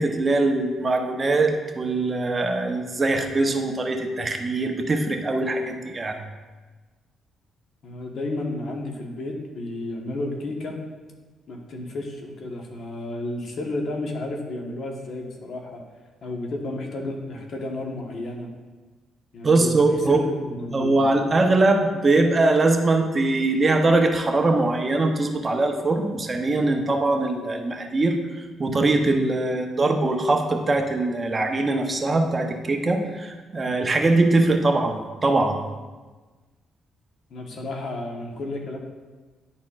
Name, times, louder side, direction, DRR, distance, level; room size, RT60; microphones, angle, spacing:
voice 1, 0.0-6.2 19.4-20.2 20.7-28.2 28.6-35.6, right 2 dB, 30° right, 4 dB, 0.7 m, -22 dB
voice 2, 7.8-10.8 11.5-15.8 16.2-18.5 19.3-21.0 37.3-38.8, left 2 dB, 60° left, 1 dB, 1.1 m, -32 dB
10.5 x 4.3 x 2.4 m, 1.3 s
cardioid pair, 90°, 0 cm